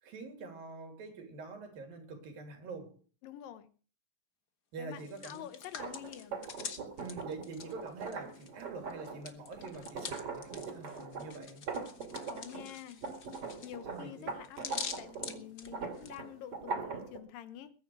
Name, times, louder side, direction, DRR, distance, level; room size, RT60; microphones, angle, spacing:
voice 1, 0.0-3.0 4.7-5.4 7.0-11.6 13.9-14.4, right 3 dB, 75° right, 4.9 m, -45 dB
voice 2, 3.2-3.7 4.8-6.5 12.3-13.0 13.6-17.7, left 11 dB, 75° left, 2.8 m, -48 dB
Hands, 4.9-8.6 8.9-16.2, left 6 dB, 55° left, 1.1 m, -45 dB
sound 1, 5.7-12.7 13.0-17.2, right 4 dB, 45° right, 3.3 m, -41 dB
21.5 x 9.7 x 4.7 m
omnidirectional pair, 4.0 m